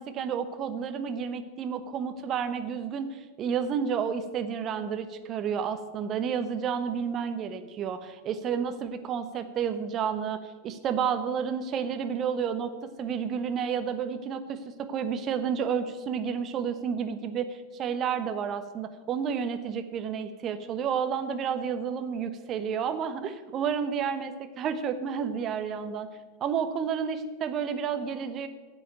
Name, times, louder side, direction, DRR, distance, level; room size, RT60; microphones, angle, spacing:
voice 1, 0.0-10.4 10.6-26.1 26.4-28.5, right 7 dB, 30° right, 9 dB, 1.1 m, -31 dB
9.9 x 7.6 x 9.1 m, 1.3 s
figure-of-eight pair, 90°, 0 cm